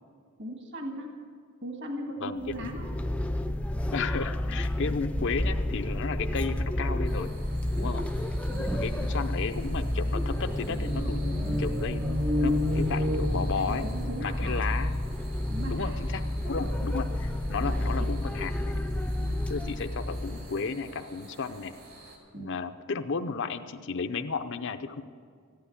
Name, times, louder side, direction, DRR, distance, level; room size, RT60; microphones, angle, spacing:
voice 1, 0.4-1.1 1.6-2.9 7.8-8.0 8.5-8.7 13.3-14.7 15.5-16.0 16.6-16.8 17.5-18.1 19.0-19.4 22.3-22.6, right 1 dB, 55° right, 2 dB, 1.7 m, -39 dB
voice 2, 2.2-2.7 3.9-7.3 7.8-8.0 8.7-13.9 14.2-15.1 15.7-18.8 19.5-21.7 22.4-25.0, left 4 dB, 55° left, 8 dB, 0.6 m, -33 dB
sound 1, 2.4-20.6, left 1 dB, 5° left, 0.4 m, -30 dB
sound 2, 7.0-22.2, right 2 dB, 70° right, 3.1 m, -51 dB
sound 3, 9.5-14.1, left 1 dB, 30° right, 0.8 m, -32 dB
14.5 x 10.5 x 8.4 m, 2.1 s
head